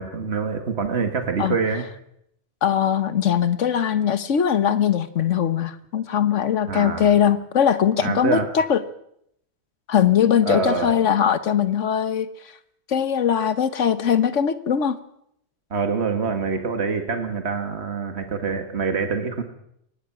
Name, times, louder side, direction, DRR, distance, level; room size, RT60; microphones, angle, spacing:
voice 1, 0.0-1.8 6.7-7.1 8.0-8.5 10.5-10.9 15.7-19.4, right 5 dB, 65° right, 6 dB, 2.0 m, -25 dB
voice 2, 2.6-8.8 9.9-12.3 12.9-15.0, left 8 dB, 85° left, 12 dB, 1.4 m, -20 dB
23.0 x 20.0 x 6.0 m, 0.73 s
omnidirectional pair, 1.2 m